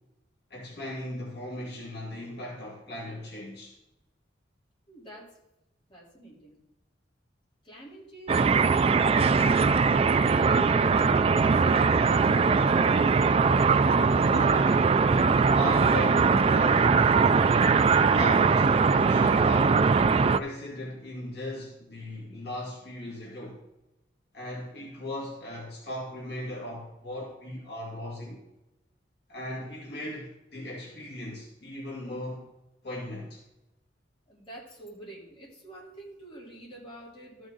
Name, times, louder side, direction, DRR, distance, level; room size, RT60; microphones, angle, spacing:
voice 1, 0.5-3.7 14.1-15.1 15.5-17.5 18.1-19.9 20.3-23.6 24.3-28.4 29.3-32.5 32.8-33.4, left 1 dB, 60° left, 2.3 m, -37 dB
voice 2, 4.9-5.3 5.9-6.6 7.6-9.8 10.4-13.2 34.3-37.5, right 2 dB, 30° left, 3.5 m, -46 dB
sound 1, 8.3-20.4, right 5 dB, 30° right, 0.3 m, -21 dB
14.0 x 6.3 x 4.0 m
head